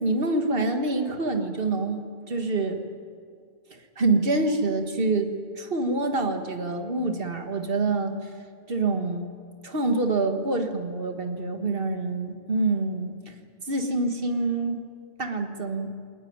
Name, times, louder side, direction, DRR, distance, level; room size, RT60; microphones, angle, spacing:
voice 1, 0.0-2.8 4.0-8.1 8.7-9.3 9.6-13.2 13.7-14.8 15.2-15.9, right 3 dB, 50° right, 6 dB, 1.9 m, -26 dB
22.0 x 19.0 x 9.6 m, 2.2 s
omnidirectional pair, 1.2 m